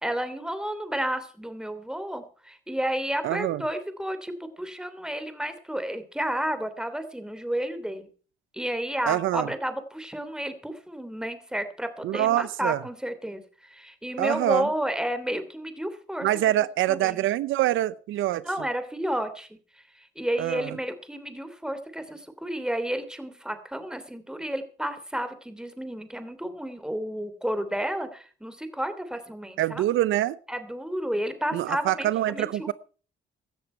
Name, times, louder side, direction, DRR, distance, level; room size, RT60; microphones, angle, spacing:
voice 1, 0.0-8.1 8.5-16.3 16.9-17.2 18.4-29.8 30.5-32.7, right 1 dB, 5° right, 10 dB, 3.1 m, -31 dB
voice 2, 3.2-3.6 9.1-9.5 12.0-12.8 14.2-14.7 16.2-18.4 20.4-20.8 29.6-30.4 31.5-32.7, right 14 dB, 85° right, 18 dB, 0.7 m, -25 dB
17.0 x 13.0 x 4.5 m, 0.39 s
cardioid pair, 90°, 20 cm